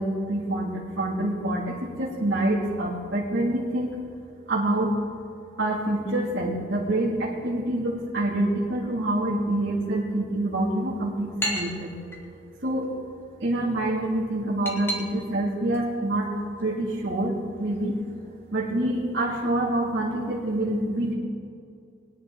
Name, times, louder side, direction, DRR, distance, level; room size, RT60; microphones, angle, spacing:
voice 1, 0.0-4.0 4.5-4.9 5.6-11.9 12.6-12.9 13.4-16.3 16.6-18.0 18.5-21.1, right 1 dB, 65° right, -6 dB, 2.0 m, -26 dB
sound 1, 10.6-20.6, equal, 10° left, 2.1 m, -40 dB
21.0 x 10.5 x 3.7 m, 2.4 s
head